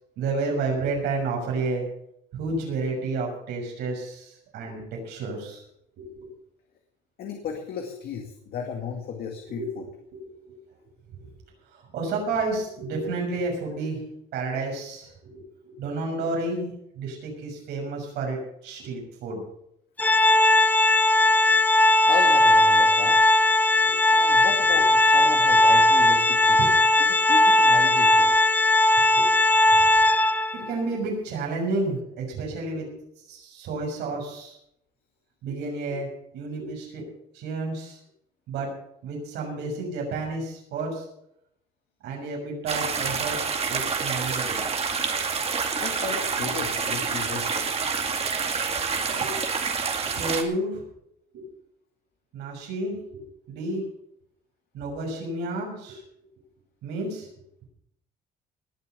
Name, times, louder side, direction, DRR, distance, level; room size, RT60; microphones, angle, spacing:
voice 1, 0.2-1.8 2.3-5.6 6.0-6.3 9.6-9.7 10.1-10.6 11.2-11.3 11.7-14.0 14.3-19.4 23.8-24.0 26.6-26.7 29.0-29.3 29.7-29.8 30.5-32.9 33.3-34.6 35.4-36.1 36.3-37.0 37.3-38.0 38.5-38.7 39.0-41.0 42.0-43.4 43.7-44.6 46.8-46.9 49.1-49.5 50.0-50.8 51.3-51.5 52.3-53.8 54.7-56.0 56.8-57.3, right 3 dB, 80° right, 0 dB, 6.4 m, -31 dB
voice 2, 7.2-9.9 22.1-23.2 24.1-26.7 27.0-28.3 29.8-29.9 45.8-47.7, left 6 dB, 65° left, 2 dB, 2.2 m, -34 dB
Organ, 20.0-30.7, left 1 dB, 10° left, 0.6 m, -18 dB
sound 1, 42.7-50.4, right 5 dB, 35° right, 2.2 m, -27 dB
19.5 x 7.3 x 6.9 m, 0.76 s
cardioid pair, 110°, 17 cm